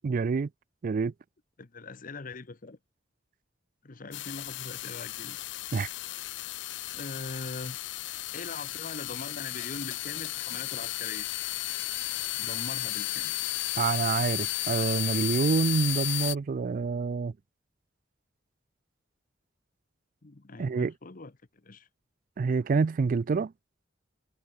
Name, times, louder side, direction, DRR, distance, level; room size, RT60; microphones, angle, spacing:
voice 1, 0.0-0.5 0.8-1.1 5.7-5.9 13.8-17.3 20.6-20.9 22.4-23.5, right 5 dB, 45° right, 0.4 m, -27 dB
voice 2, 1.6-2.8 3.8-5.4 6.9-7.8 8.3-11.3 12.4-13.5 20.2-21.9, left 3 dB, 45° left, 1.0 m, -42 dB
sound 1, 4.1-16.4, left 17 dB, 65° left, 0.5 m, -34 dB
head